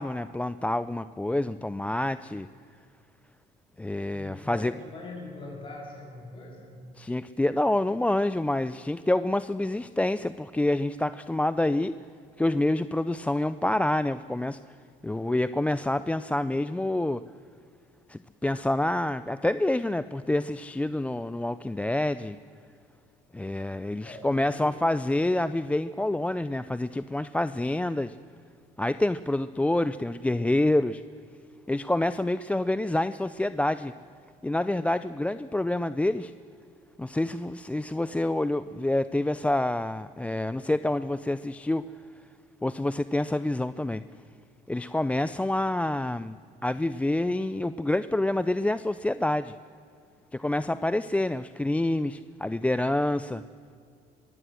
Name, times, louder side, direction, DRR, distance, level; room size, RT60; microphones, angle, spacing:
voice 1, 0.0-2.5 3.8-4.7 7.0-12.0 12.4-14.6 15.0-17.2 18.1-22.4 23.3-28.2 28.8-31.0 31.7-33.9 34.4-36.3 37.0-41.8 42.6-44.0 44.7-46.4 46.6-49.6 50.3-53.4, left 1 dB, 10° left, 14 dB, 0.4 m, -27 dB
voice 2, 4.1-6.8 24.0-24.9, left 2 dB, 30° left, 0 dB, 7.6 m, -42 dB
21.5 x 16.0 x 7.8 m, 2.3 s
cardioid pair, 110°, 17 cm